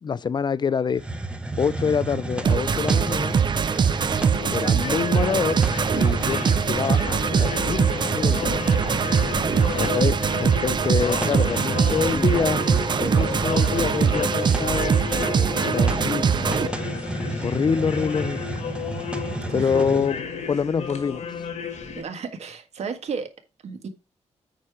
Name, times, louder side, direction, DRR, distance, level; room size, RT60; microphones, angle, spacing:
voice 1, 0.0-1.0 1.6-3.4 4.5-5.6 6.0-8.6 9.7-12.7 13.0-16.6 17.4-18.5 19.5-20.2 20.5-21.2, left 6 dB, 40° left, 0.4 m, -26 dB
Hiss, 0.9-20.2, right 2 dB, 10° right, 0.8 m, -32 dB
sound 1, 2.4-16.7, right 6 dB, 40° right, 0.4 m, -22 dB
sound 2, 4.3-22.0, left 6 dB, 85° left, 1.9 m, -33 dB
voice 2, 19.5-19.8 22.0-23.3 23.6-23.9, right 5 dB, 70° right, 1.7 m, -33 dB
8.7 x 5.1 x 4.7 m
wide cardioid pair, 145°, 12 cm